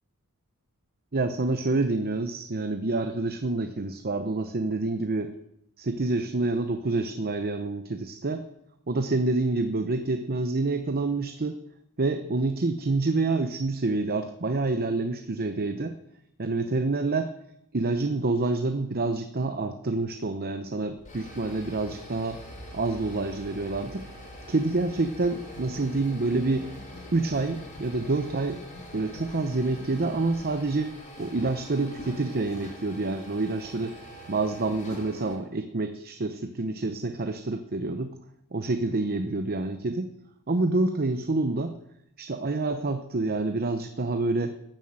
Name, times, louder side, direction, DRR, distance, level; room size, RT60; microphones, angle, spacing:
voice 1, 1.1-5.3 5.8-8.4 8.9-11.6 12.0-16.0 16.4-17.3 17.7-22.4 22.7-24.0 24.5-26.7 27.1-28.6 28.9-30.9 31.2-34.0 34.3-38.1 38.5-40.1 40.5-41.8 42.2-44.6, right 3 dB, 45° right, 8 dB, 0.8 m, -27 dB
sound 1, 20.9-35.4, equal, 35° left, 3.6 m, -44 dB
sound 2, 25.4-30.5, left 1 dB, 85° left, 5.2 m, -48 dB
14.5 x 7.5 x 8.9 m, 0.80 s
head